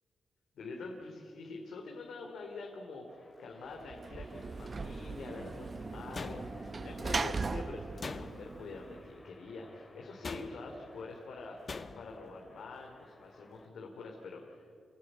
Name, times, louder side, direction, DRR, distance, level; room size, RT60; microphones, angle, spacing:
voice 1, 0.5-14.7, left 3 dB, 80° left, 1 dB, 2.8 m, -46 dB
sound 1, 3.1-13.7, left 2 dB, 20° left, 2.6 m, -56 dB
Sliding door / Slam, 3.8-9.2, right 4 dB, 35° right, 0.7 m, -39 dB
sound 2, 6.1-6.9 8.0-8.7 10.2-10.8 11.7-12.2, left 4 dB, 35° left, 1.0 m, -43 dB
27.0 x 18.5 x 8.9 m, 2.6 s
wide cardioid pair, 115°, 0 cm